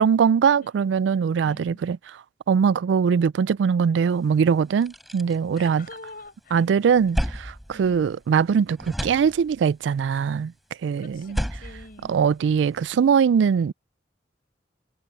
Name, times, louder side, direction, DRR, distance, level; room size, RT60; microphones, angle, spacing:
voice 1, 0.0-2.0 2.5-5.9 6.5-10.5 10.8-11.4 12.1-13.7, right 6 dB, 80° right, 0.3 m, -21 dB
voice 2, 1.4-1.8 5.5-6.6 7.7-8.1 11.0-12.1, left 2 dB, 55° left, 5.0 m, -45 dB
sound 1, 4.2-4.3 4.6-6.3 6.7-8.5 8.8-9.8 11.1-12.8, equal, ahead, 7.5 m, -33 dB
head